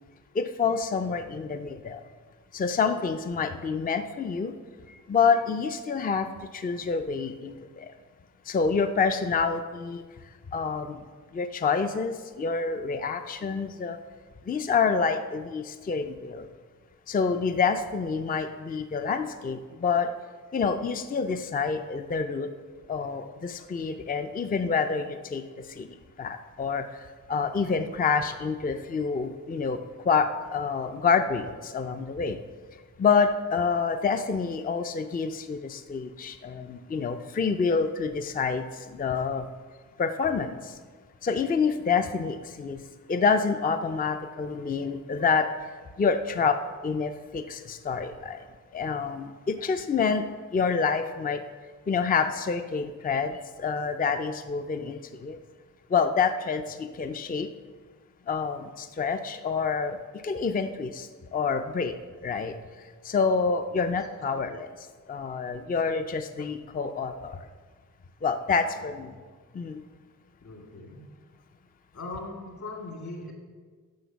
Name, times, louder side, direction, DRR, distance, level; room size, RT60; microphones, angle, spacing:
voice 1, 0.4-2.0 2.5-4.5 5.1-6.3 6.5-7.9 8.5-10.0 10.5-11.0 11.3-14.0 14.5-16.5 17.1-20.1 20.5-22.5 22.9-25.4 25.8-25.9 26.2-26.8 27.3-29.8 30.1-32.4 33.0-39.5 40.0-40.7 41.2-42.8 43.1-45.5 46.0-48.4 48.7-50.3 50.5-51.4 51.9-55.4 55.9-57.5 58.3-60.0 60.2-61.9 62.2-62.5 63.0-64.7 65.1-67.4 68.2-69.1 69.5-69.8, left 5 dB, 25° left, 8 dB, 0.4 m, -27 dB
voice 2, 1.0-1.4 41.9-42.1 56.6-56.8 68.7-69.1 70.4-71.0 71.9-73.3, left 2 dB, 60° left, 1 dB, 2.5 m, -41 dB
10.5 x 5.9 x 6.9 m, 1.5 s
wide cardioid pair, 125°, 33 cm